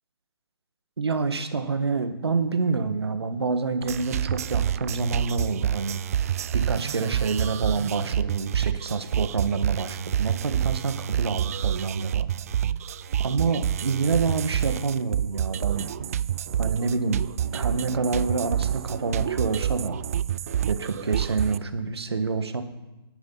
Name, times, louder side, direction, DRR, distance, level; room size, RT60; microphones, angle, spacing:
voice 1, 1.0-6.0 6.5-12.3 13.2-15.9 16.6-17.3 17.5-20.0 20.7-22.6, right 4 dB, 80° right, 8 dB, 1.6 m, -27 dB
sound 1, 3.8-21.6, right 10 dB, 35° right, 0.3 m, -28 dB
18.0 x 10.0 x 4.1 m, 1.0 s
hypercardioid pair, 150°, 13 cm